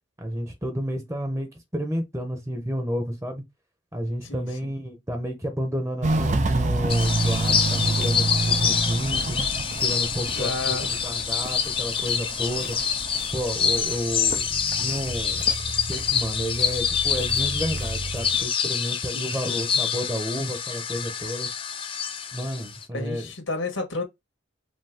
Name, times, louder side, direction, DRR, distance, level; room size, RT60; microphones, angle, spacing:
voice 1, 0.2-3.4 3.9-9.4 9.7-10.8 11.0-12.8 13.3-15.4 15.9-21.5 22.3-23.3, equal, 15° right, 1.0 m, -31 dB
voice 2, 4.2-4.7 10.3-11.0 19.1-19.6 22.9-24.0, left 3 dB, 90° left, 1.8 m, -32 dB
Walk footsteps, 6.0-18.4, right 2 dB, 35° right, 0.5 m, -29 dB
sound 1, 6.9-22.8, left 7 dB, 25° left, 0.6 m, -26 dB
5.2 x 2.8 x 3.7 m
head